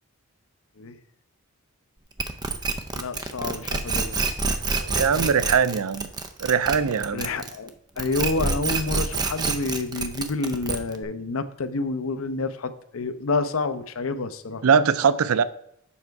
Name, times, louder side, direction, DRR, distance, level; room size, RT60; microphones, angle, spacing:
sound 1, 2.2-7.7 8.0-11.0, right 4 dB, 20° right, 0.5 m, -27 dB
voice 1, 3.0-4.2 7.1-14.6, left 3 dB, 70° left, 0.6 m, -28 dB
voice 2, 4.7-6.1 6.4-7.3 14.6-15.4, right 6 dB, 80° right, 0.4 m, -21 dB
7.2 x 5.5 x 4.6 m
head